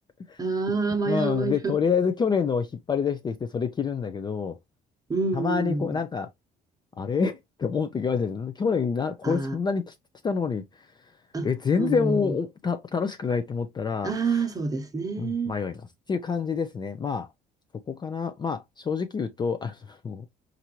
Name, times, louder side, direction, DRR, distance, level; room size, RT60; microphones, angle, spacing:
voice 1, 0.4-1.7 5.1-5.9 9.2-9.6 11.3-11.5 11.8-12.4 14.0-15.5, right 4 dB, 20° right, 0.9 m, -27 dB
voice 2, 1.1-4.6 5.3-6.3 7.0-9.9 10.2-10.9 11.4-14.4 15.2-17.3 17.9-20.3, left 6 dB, 25° left, 0.4 m, -27 dB
4.3 x 2.5 x 2.9 m
cardioid pair, 110°, 17 cm